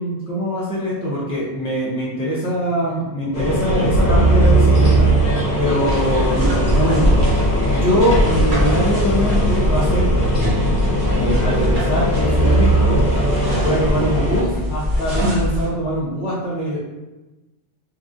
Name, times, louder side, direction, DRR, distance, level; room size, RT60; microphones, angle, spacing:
voice 1, 0.0-5.1 5.6-10.1 11.2-13.0 13.5-16.8, equal, 10° right, -8 dB, 0.4 m, -22 dB
sound 1, 3.3-14.4, right 1 dB, 55° left, 0.9 m, -18 dB
sound 2, 5.8-15.7, left 1 dB, 35° right, 0.7 m, -22 dB
2.9 x 2.4 x 2.5 m, 1.1 s
omnidirectional pair, 1.3 m